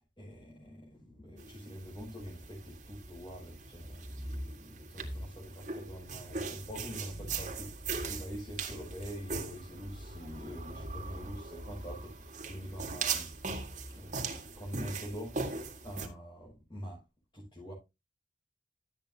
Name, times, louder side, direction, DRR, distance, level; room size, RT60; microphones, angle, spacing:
voice 1, 0.2-13.3 13.9-17.0 17.3-17.7, equal, 25° left, 5.7 m, -45 dB
sound 1, 1.4-16.1, right 4 dB, 45° right, 2.0 m, -40 dB
12.5 x 8.9 x 2.8 m
head